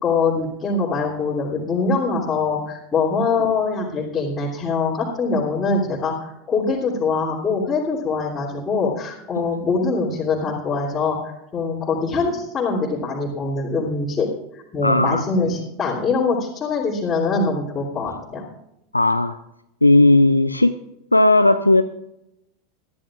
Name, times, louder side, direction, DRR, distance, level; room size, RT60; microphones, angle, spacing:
voice 1, 0.0-14.3 14.5-18.4, left 4 dB, 20° left, -7 dB, 3.1 m, -23 dB
voice 2, 14.8-15.2 18.9-19.4 19.8-20.7 21.1-21.8, left 2 dB, 90° left, 10 dB, 0.5 m, -15 dB
21.5 x 13.5 x 2.5 m, 0.84 s
figure-of-eight pair, 85°, 0 cm